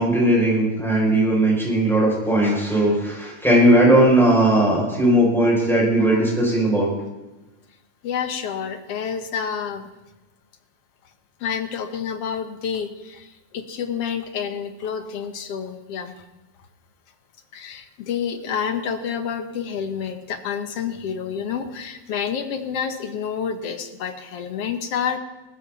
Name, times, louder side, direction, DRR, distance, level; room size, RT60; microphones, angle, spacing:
voice 1, 0.0-6.9, right 1 dB, ahead, -4 dB, 6.5 m, -18 dB
voice 2, 8.0-9.9 11.4-13.3 13.5-16.1 17.5-25.2, left 7 dB, 60° left, 8 dB, 2.0 m, -28 dB
19.5 x 14.5 x 4.2 m, 1.1 s
omnidirectional pair, 3.3 m